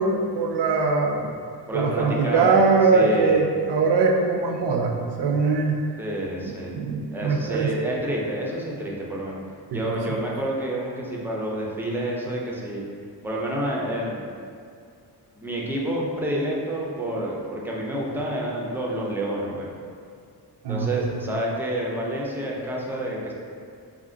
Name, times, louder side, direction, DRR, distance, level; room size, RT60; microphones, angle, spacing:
voice 1, 0.0-1.4 1.7-5.8 6.7-7.7 9.7-9.8 10.1-10.2 20.6-21.1, right 4 dB, 85° right, 1 dB, 0.6 m, -22 dB
voice 2, 1.7-2.6 2.9-3.4 6.0-6.7 7.1-9.4 9.7-12.8 13.2-14.3 15.4-19.7 20.7-23.3, right 1 dB, 5° right, -4 dB, 0.3 m, -28 dB
3.6 x 2.5 x 3.7 m, 2.3 s
wide cardioid pair, 170°, 40 cm